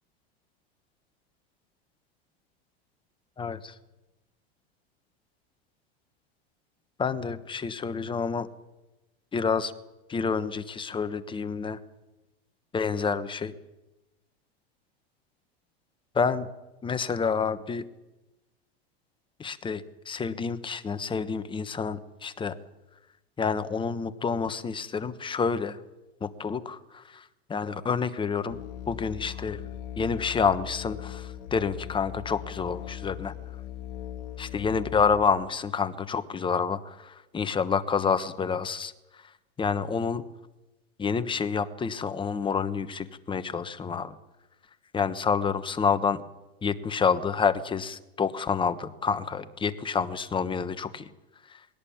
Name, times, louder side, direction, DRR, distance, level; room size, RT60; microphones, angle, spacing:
voice 1, 3.4-3.7 7.0-8.5 9.3-9.7 10.1-11.8 12.7-13.5 16.1-16.5 16.8-17.8 19.4-22.6 23.4-25.8 26.2-28.6 28.9-29.6 30.0-33.3 34.4-39.2 39.6-40.2 41.0-44.2 44.9-46.2 46.6-51.1 51.5-51.6, left 5 dB, 15° left, 11 dB, 1.2 m, -28 dB
Musical instrument, 28.5-35.2, left 12 dB, 55° left, 2.3 m, -39 dB
21.0 x 17.5 x 8.7 m, 1.0 s
supercardioid pair, 130°, 31 cm